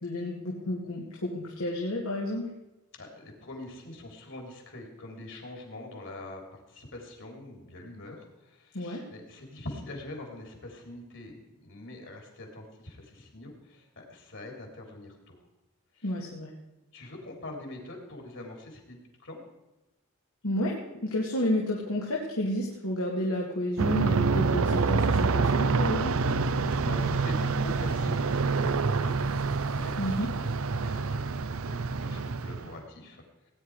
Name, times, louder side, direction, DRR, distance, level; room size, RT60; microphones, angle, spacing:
voice 1, 0.0-2.5 8.7-9.0 16.0-16.5 20.4-20.8 21.0-26.2 30.0-30.3, left 1 dB, 75° left, -3 dB, 2.2 m, -31 dB
voice 2, 2.9-15.4 15.9-16.1 16.9-19.4 26.8-29.1 29.6-33.5, left 2 dB, 60° left, 2 dB, 3.4 m, -44 dB
Aircraft, 23.8-32.8, right 4 dB, 65° right, 0.6 m, -27 dB
18.5 x 10.0 x 4.8 m, 1.0 s
head